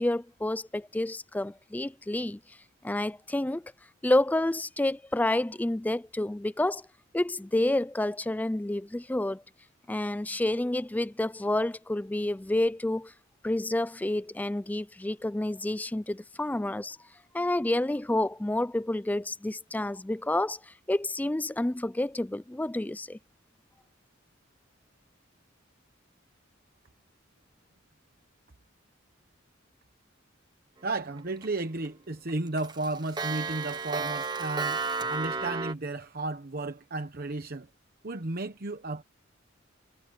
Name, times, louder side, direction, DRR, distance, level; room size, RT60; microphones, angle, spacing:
voice 1, 0.0-2.4 2.8-3.6 4.0-6.9 7.1-9.4 9.9-13.1 13.4-17.0 17.3-23.2, left 1 dB, 10° left, 0.3 m, -29 dB
voice 2, 30.8-34.8 35.1-37.7 38.0-39.0, right 2 dB, 50° right, 1.0 m, -33 dB
Clock, 31.0-31.5 31.8-31.9 32.3-35.7, right 4 dB, 20° right, 1.1 m, -32 dB
head